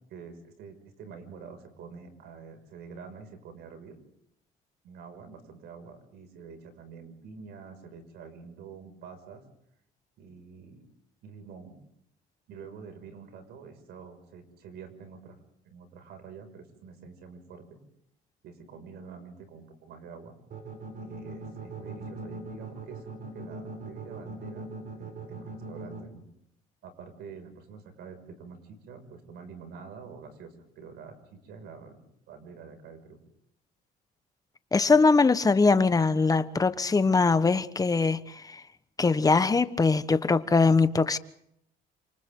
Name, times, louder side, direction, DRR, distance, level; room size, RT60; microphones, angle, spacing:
voice 1, 0.1-4.0 4.8-9.4 10.2-10.9 11.2-11.8 12.5-15.4 15.6-17.8 18.4-20.4 21.0-24.7 24.9-26.3 26.8-32.0 32.3-33.2, right 5 dB, 75° right, 6.1 m, -47 dB
sound 1, 20.5-26.0, right 4 dB, 55° right, 7.7 m, -40 dB
voice 2, 34.7-38.6 39.0-41.2, left 4 dB, 20° left, 1.3 m, -22 dB
29.5 x 27.5 x 3.9 m
cardioid pair, 110°, 17 cm